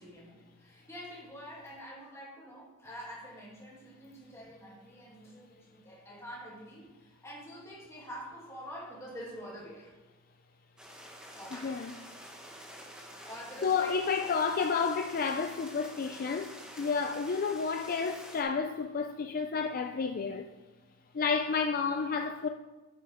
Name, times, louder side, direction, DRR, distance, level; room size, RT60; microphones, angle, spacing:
voice 1, 0.0-9.9 11.3-11.8 13.2-14.4, equal, 15° left, 2.6 m, -46 dB
sound 1, 10.8-18.4, equal, 5° right, 1.3 m, -48 dB
voice 2, 13.6-20.5 21.1-22.5, left 5 dB, 45° left, 0.4 m, -31 dB
9.4 x 9.4 x 3.6 m
head